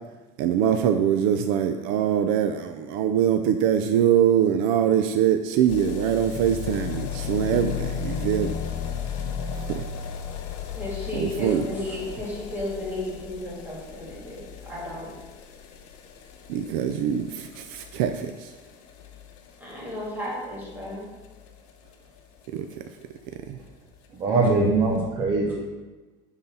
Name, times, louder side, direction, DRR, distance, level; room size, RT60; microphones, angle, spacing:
voice 1, 0.4-8.5 9.7-9.8 11.1-11.6 16.5-18.5 22.5-22.6, right 9 dB, 70° right, 7 dB, 0.5 m, -23 dB
sound 1, 5.7-22.5 22.7-22.8 23.0-23.1 23.3-23.4 23.7-23.8 24.5-24.6, left 7 dB, 80° left, 1.0 m, -35 dB
voice 2, 10.7-15.1 19.6-21.1, left 1 dB, 10° right, -6 dB, 2.8 m, -33 dB
voice 3, 24.2-25.6, right 3 dB, 30° right, -3 dB, 1.0 m, -22 dB
9.9 x 4.0 x 5.5 m, 1.2 s
cardioid pair, 170°, 16 cm